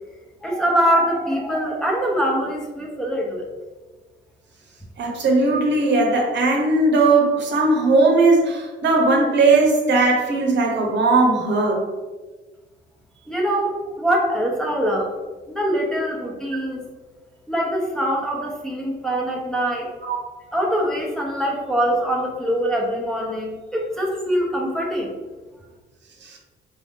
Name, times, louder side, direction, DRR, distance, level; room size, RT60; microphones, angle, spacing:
voice 1, 0.4-3.5 13.2-15.1 15.5-16.8 17.5-19.9 20.5-25.1, equal, 5° left, -2 dB, 0.9 m, -23 dB
voice 2, 5.0-11.8 20.1-20.2 26.2-26.4, right 3 dB, 65° right, 0 dB, 0.9 m, -18 dB
4.1 x 2.7 x 3.6 m, 1.3 s
cardioid pair, 90°, 20 cm